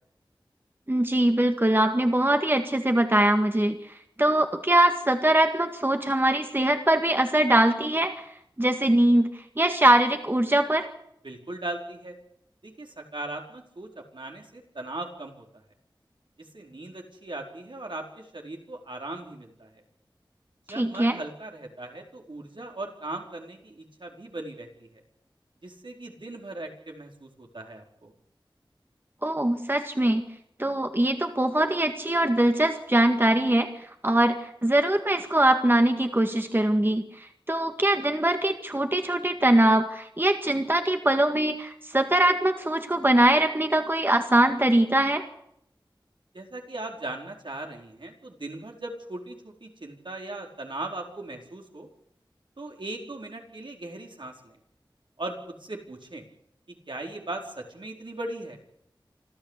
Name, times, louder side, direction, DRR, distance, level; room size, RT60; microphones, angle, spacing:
voice 1, 0.9-3.8 4.2-8.2 8.6-9.3 9.6-10.9 20.8-21.2 29.2-30.2 30.6-45.2, right 1 dB, 25° right, 6 dB, 2.0 m, -22 dB
voice 2, 11.2-12.1 12.6-15.6 16.5-19.8 20.7-25.0 25.6-28.1 46.3-51.9 52.6-54.6 55.2-55.3 55.6-56.2 56.9-58.6, right 2 dB, 70° right, 1 dB, 4.7 m, -38 dB
26.5 x 14.0 x 8.4 m, 0.75 s
wide cardioid pair, 50°, 9 cm